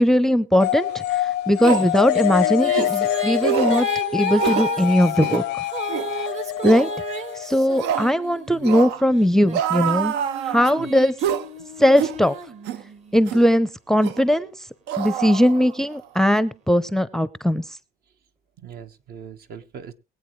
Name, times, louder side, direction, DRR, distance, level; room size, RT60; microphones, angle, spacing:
voice 1, 0.0-3.9 4.1-5.4 6.6-6.9 7.4-10.1 10.5-11.1 11.8-12.3 13.1-14.5 15.0-17.6, equal, 5° left, 17 dB, 0.5 m, -19 dB
sound 1, 0.6-8.1, left 14 dB, 80° left, 0.5 m, -25 dB
sound 2, 0.9-1.0 1.6-1.9 2.7-2.9 3.4-3.8 4.4-4.7 5.2-5.5 5.9-6.1 6.6-6.9 7.8-8.1 8.6-9.0 9.5-10.8 11.2-11.5 12.0-12.2 12.7-12.8 13.3-13.5 14.0-14.2 14.9-15.9 16.2-16.4, right 9 dB, 90° right, 0.7 m, -26 dB
Female singing, 1.8-8.7 9.4-13.2, right 4 dB, 40° right, 1.3 m, -34 dB
voice 2, 18.6-19.9, right 7 dB, 65° right, 8 dB, 1.2 m, -40 dB
23.0 x 8.3 x 3.1 m, 0.29 s
cardioid pair, 110°, 17 cm